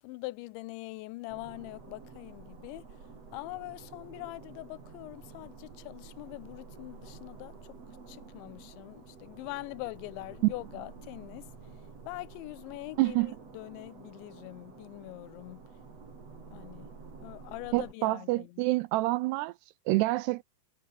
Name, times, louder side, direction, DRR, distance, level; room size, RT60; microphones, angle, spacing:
voice 1, 0.0-2.8 3.3-7.5 8.1-11.5 12.1-15.6 16.5-16.9 17.2-18.6, left 21 dB, 85° left, 3.0 m, -43 dB
sound 1, 1.3-17.9, right 4 dB, 35° right, 5.3 m, -50 dB
voice 2, 13.0-13.4 17.7-19.5 19.9-20.4, right 20 dB, 85° right, 2.5 m, -27 dB
omnidirectional pair, 5.2 m